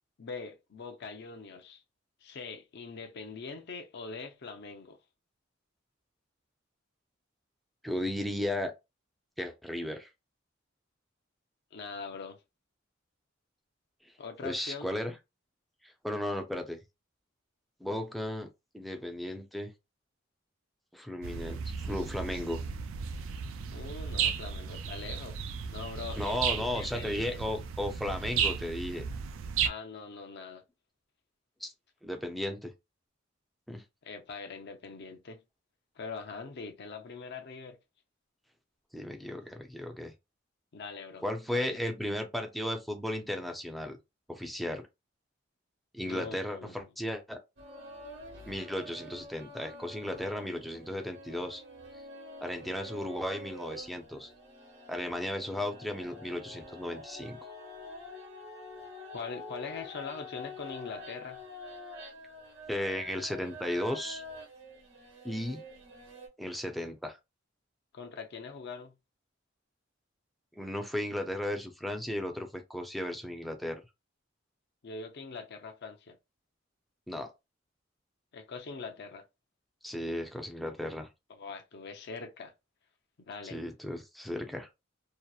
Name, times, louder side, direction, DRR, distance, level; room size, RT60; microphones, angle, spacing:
voice 1, 0.2-1.8 2.2-5.0 11.7-12.4 14.2-14.9 23.7-27.4 29.6-30.6 34.0-35.4 36.0-37.8 40.7-41.8 46.1-46.9 59.1-61.4 67.9-68.9 74.8-76.2 78.3-79.3 81.3-82.5 83.3-83.6, left 4 dB, 60° left, 0.5 m, -42 dB
voice 2, 7.8-8.7 9.4-10.1 14.4-15.1 15.8-16.8 17.8-18.5 18.7-19.7 20.9-22.6 26.2-29.1 31.6-31.7 32.0-32.7 33.7-33.8 38.9-40.1 41.2-44.0 44.3-44.8 45.9-47.4 48.5-51.6 52.4-54.3 54.9-57.5 62.7-64.2 65.2-65.6 66.4-67.2 70.6-73.8 77.1-77.3 79.8-81.1 83.4-84.7, left 1 dB, ahead, 0.4 m, -35 dB
Nature Ambiance, 21.2-29.7, right 6 dB, 90° right, 0.3 m, -34 dB
sound 1, 47.6-66.3, left 1 dB, 65° right, 1.0 m, -47 dB
2.7 x 2.0 x 2.3 m
head